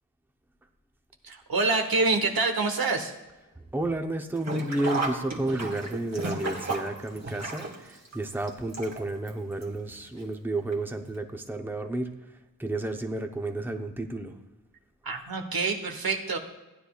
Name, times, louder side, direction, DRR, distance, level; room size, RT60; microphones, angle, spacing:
voice 1, 1.2-3.1 15.0-16.4, right 3 dB, 80° right, 4 dB, 1.2 m, -26 dB
voice 2, 3.7-12.1 12.6-14.4, right 2 dB, 5° right, 4 dB, 0.7 m, -31 dB
Sink (filling or washing), 4.3-9.3 9.6-9.7 10.7-10.8 11.1-11.2, right 3 dB, 50° right, 1.7 m, -33 dB
15.5 x 9.9 x 2.4 m, 1.1 s
wide cardioid pair, 80°, 35 cm